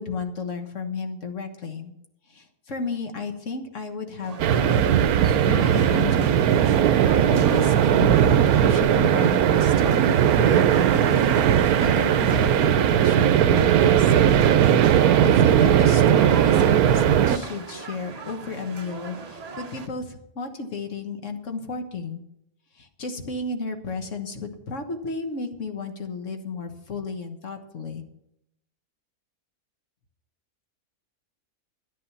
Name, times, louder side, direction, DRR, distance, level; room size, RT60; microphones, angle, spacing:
voice 1, 0.0-1.9 2.3-5.1 5.4-6.5 7.1-14.4 14.9-22.2 22.7-28.0, left 4 dB, 55° left, 5 dB, 1.7 m, -33 dB
sound 1, 4.2-19.9, right 4 dB, 35° right, 0.7 m, -39 dB
sound 2, 4.4-17.4, right 10 dB, 80° right, 1.1 m, -18 dB
11.0 x 10.0 x 5.7 m, 0.80 s
omnidirectional pair, 1.6 m